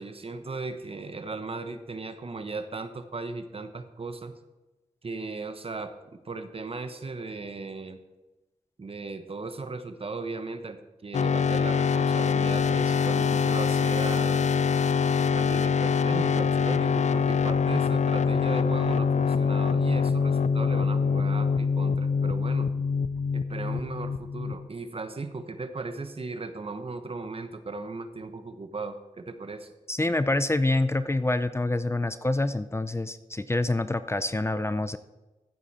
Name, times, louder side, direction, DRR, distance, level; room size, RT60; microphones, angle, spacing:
voice 1, 0.0-4.3 5.0-5.9 6.2-8.0 8.8-14.4 15.3-22.7 23.3-29.7, right 3 dB, 50° right, 9 dB, 1.2 m, -37 dB
sound 1, 11.1-24.7, left 5 dB, 70° left, 0.5 m, -24 dB
voice 2, 29.9-35.0, left 2 dB, 20° left, 12 dB, 0.5 m, -26 dB
14.5 x 8.1 x 4.3 m, 1.1 s
wide cardioid pair, 70°, 13 cm